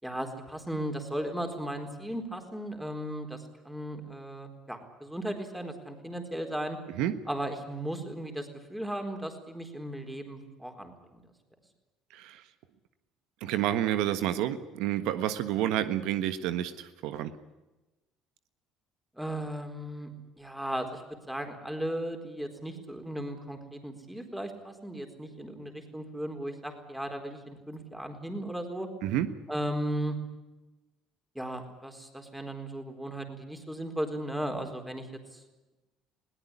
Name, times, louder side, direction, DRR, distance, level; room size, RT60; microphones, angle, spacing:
voice 1, 0.0-3.4 3.6-6.8 7.3-11.2 19.2-20.1 20.4-21.0 21.3-28.9 29.5-30.2 31.3-35.1 35.3-35.4, right 1 dB, 5° right, 5 dB, 4.2 m, -36 dB
voice 2, 13.4-17.3 29.0-29.3, right 12 dB, 80° right, 11 dB, 1.4 m, -29 dB
21.5 x 18.0 x 9.9 m, 1.1 s
cardioid pair, 115°, 0 cm